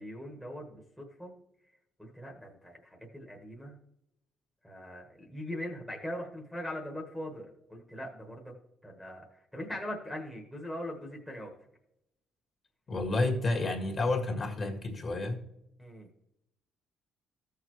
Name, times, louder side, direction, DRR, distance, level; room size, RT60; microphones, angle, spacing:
voice 1, 0.0-1.3 2.0-3.8 4.6-8.5 8.8-11.5 15.8-16.1, left 1 dB, 5° left, -2 dB, 1.4 m, -41 dB
voice 2, 12.9-15.4, left 2 dB, 30° left, 2 dB, 1.9 m, -30 dB
15.0 x 6.6 x 3.1 m, 0.81 s
cardioid pair, 150°, 0 cm